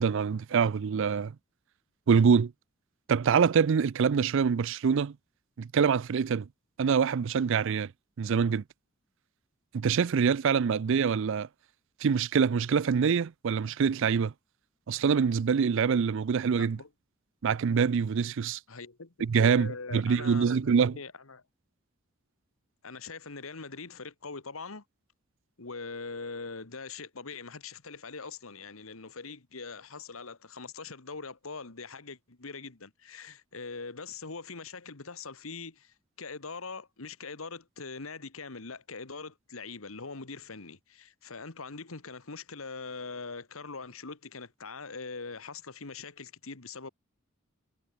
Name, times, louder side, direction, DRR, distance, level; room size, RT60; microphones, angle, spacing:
voice 1, 0.0-1.3 2.1-2.5 3.1-5.1 5.6-6.5 6.8-7.9 8.2-8.6 9.7-11.5 12.0-14.3 14.9-16.8 17.4-18.6 19.2-21.0, right 6 dB, 65° right, 0.4 m, -25 dB
voice 2, 16.5-16.9 18.7-21.4 22.8-24.8 25.6-46.9, left 4 dB, 80° left, 1.7 m, -42 dB
head